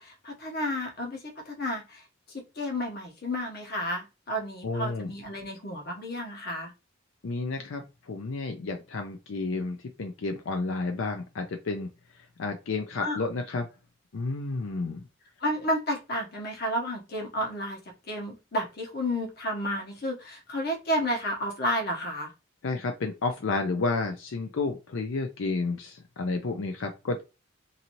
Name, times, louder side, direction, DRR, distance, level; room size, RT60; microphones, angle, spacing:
voice 1, 0.0-2.0 2.6-6.7 13.0-13.2 15.4-22.3, equal, 55° left, 2 dB, 1.0 m, -31 dB
voice 2, 4.6-5.1 7.2-11.9 12.4-13.7 14.1-15.0 22.6-27.2, left 3 dB, 85° left, 4 dB, 0.5 m, -31 dB
2.6 x 2.6 x 2.9 m, 0.28 s
head